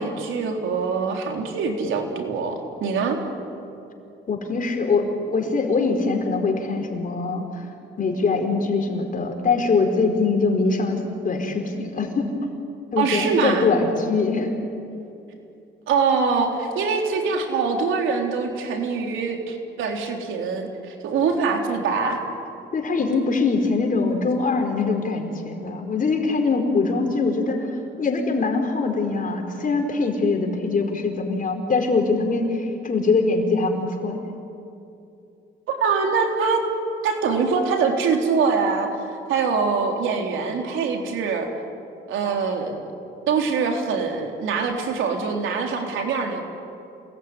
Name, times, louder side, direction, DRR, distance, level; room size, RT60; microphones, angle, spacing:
voice 1, 0.0-3.2 13.0-13.7 15.9-22.2 35.7-36.6 37.0-38.9 39.3-41.5 42.1-42.9 43.3-46.4, right 5 dB, 80° right, 3 dB, 3.8 m, -23 dB
voice 2, 4.3-7.4 8.0-12.3 12.9-14.5 22.7-27.7 28.0-34.2, left 4 dB, 45° left, 3 dB, 4.9 m, -23 dB
28.0 x 20.0 x 9.8 m, 2.7 s
cardioid pair, 90°, 20 cm